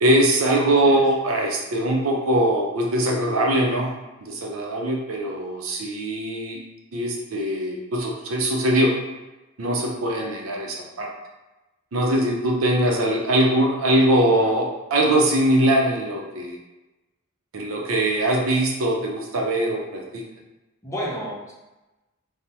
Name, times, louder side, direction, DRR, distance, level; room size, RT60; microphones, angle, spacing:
voice 1, 0.0-3.9 4.2-6.6 6.9-8.9 9.6-11.1 11.9-16.6 17.5-20.2, right 1 dB, 70° right, 0 dB, 0.5 m, -22 dB
voice 2, 0.7-1.0 14.3-14.5 20.8-21.5, equal, 15° left, -5 dB, 0.6 m, -32 dB
3.2 x 2.0 x 2.7 m, 1.1 s
head